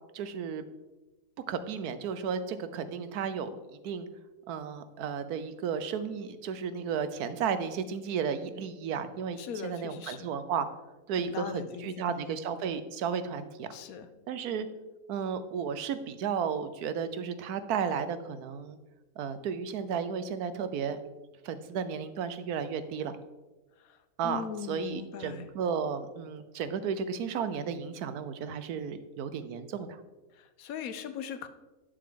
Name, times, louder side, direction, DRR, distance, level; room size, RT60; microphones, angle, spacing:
voice 1, 0.1-0.6 1.5-4.1 4.5-10.7 11.1-13.7 14.3-14.7 15.1-18.8 19.2-21.0 21.4-23.2 24.2-30.0, right 6 dB, 85° right, 12 dB, 1.2 m, -33 dB
voice 2, 9.4-10.3 11.1-12.3 13.7-14.1 23.8-24.0 24.2-25.5 30.3-31.5, left 7 dB, 75° left, 11 dB, 1.1 m, -40 dB
11.0 x 6.9 x 3.7 m, 1.1 s
omnidirectional pair, 1.6 m